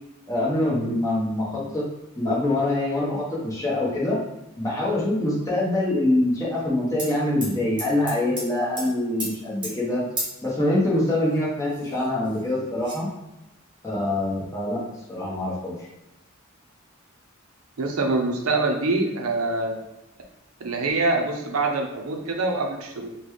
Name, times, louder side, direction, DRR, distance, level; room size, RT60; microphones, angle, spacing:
voice 1, 0.3-1.8 2.1-4.2 4.6-10.0 10.4-13.1 13.8-14.8 15.1-15.8, left 1 dB, 15° left, -5 dB, 1.0 m, -24 dB
sound 1, 7.0-7.1 7.4-8.5 8.8-8.9 9.2-9.3 9.6-9.7 10.2-10.4 11.3-11.4 11.7-12.4 12.8-13.0, right 1 dB, 20° right, 1.1 m, -32 dB
voice 2, 17.8-19.8 20.6-23.1, right 3 dB, 90° right, 2 dB, 0.6 m, -25 dB
3.9 x 2.3 x 3.1 m, 0.96 s
head